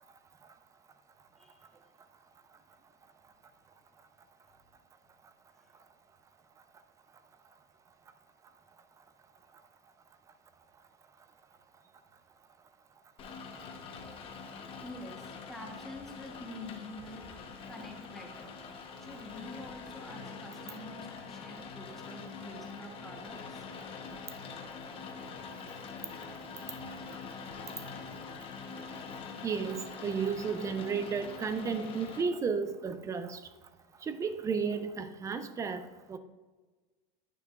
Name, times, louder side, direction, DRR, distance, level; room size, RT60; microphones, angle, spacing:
Rain, 13.2-32.2, left 5 dB, 25° left, 0.9 m, -44 dB
voice 1, 14.8-17.2 17.7-18.6 19.0-23.7, left 1 dB, ahead, 1 dB, 1.0 m, -47 dB
voice 2, 29.4-33.4 34.0-36.2, right 5 dB, 15° right, 10 dB, 0.4 m, -33 dB
9.6 x 6.8 x 2.4 m, 1.3 s
supercardioid pair, 150°, 20 cm